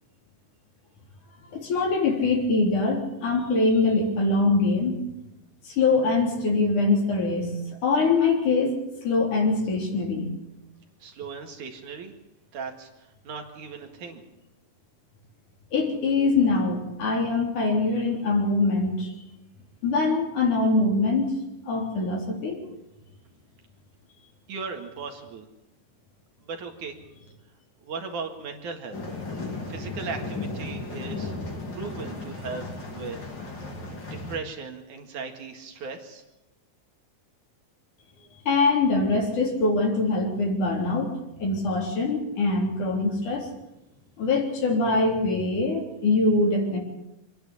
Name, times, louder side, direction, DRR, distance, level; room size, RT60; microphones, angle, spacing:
voice 1, 1.5-4.9 5.6-7.5 7.8-8.7 9.0-10.3 15.7-19.1 19.8-21.4 21.7-22.6 38.5-41.1 41.4-43.5 44.2-46.8, left 3 dB, 60° left, 0 dB, 4.9 m, -23 dB
voice 2, 11.0-12.1 12.5-14.2 24.5-25.5 26.4-27.0 27.8-29.0 29.7-31.3 31.7-32.7 32.9-33.2 33.9-36.2, right 5 dB, 65° right, 4 dB, 3.3 m, -37 dB
sound 1, 28.9-34.4, left 2 dB, 35° left, 3.2 m, -35 dB
26.0 x 10.5 x 9.8 m, 0.94 s
omnidirectional pair, 3.9 m